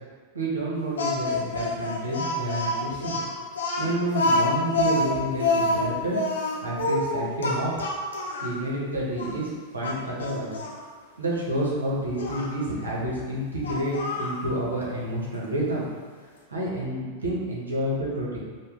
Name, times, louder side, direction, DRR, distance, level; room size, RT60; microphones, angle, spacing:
voice 1, 0.3-3.2 3.8-6.1 6.6-7.7 8.4-10.5 11.2-15.8 16.5-18.4, right 1 dB, 75° right, -5 dB, 1.1 m, -29 dB
Speech, 1.0-8.5 9.2-9.3 9.8-10.8 12.2-12.5 13.6-14.4, left 2 dB, 70° left, 0.7 m, -27 dB
5.4 x 2.3 x 3.7 m, 1.5 s
figure-of-eight pair, 90°, 0 cm